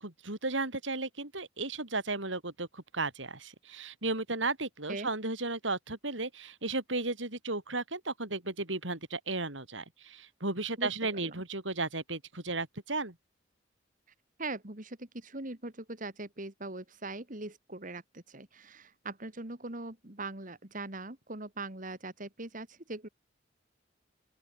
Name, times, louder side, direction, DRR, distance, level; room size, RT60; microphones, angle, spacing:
voice 1, 0.0-13.1, right 3 dB, 85° right, 5.9 m, -34 dB
voice 2, 10.8-11.4 14.4-23.1, right 2 dB, 45° right, 3.0 m, -41 dB
open air
head